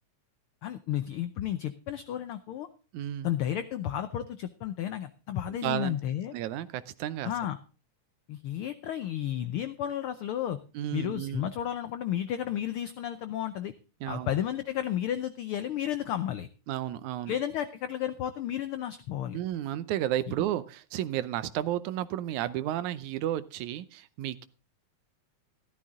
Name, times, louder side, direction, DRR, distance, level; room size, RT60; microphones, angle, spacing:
voice 1, 0.6-2.7 3.2-6.3 7.2-7.6 8.3-10.6 10.9-13.7 14.1-16.5 17.3-19.4, left 11 dB, 85° left, 11 dB, 1.2 m, -32 dB
voice 2, 2.9-3.3 5.5-6.0 6.3-7.3 10.7-11.5 14.0-14.3 16.7-17.3 19.3-24.5, right 12 dB, 85° right, 15 dB, 2.2 m, -32 dB
13.5 x 13.0 x 3.7 m, 0.33 s
omnidirectional pair, 3.3 m